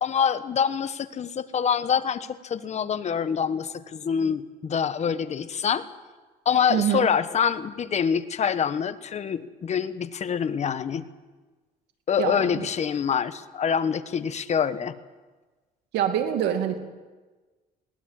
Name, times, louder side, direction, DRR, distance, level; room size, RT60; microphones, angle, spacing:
voice 1, 0.0-5.9 6.4-11.0 12.1-14.9, left 7 dB, 40° left, 12 dB, 1.2 m, -26 dB
voice 2, 6.7-7.1 12.2-12.6 15.9-16.8, right 10 dB, 85° right, 6 dB, 2.5 m, -25 dB
21.0 x 18.5 x 7.6 m, 1.3 s
cardioid pair, 110°, 17 cm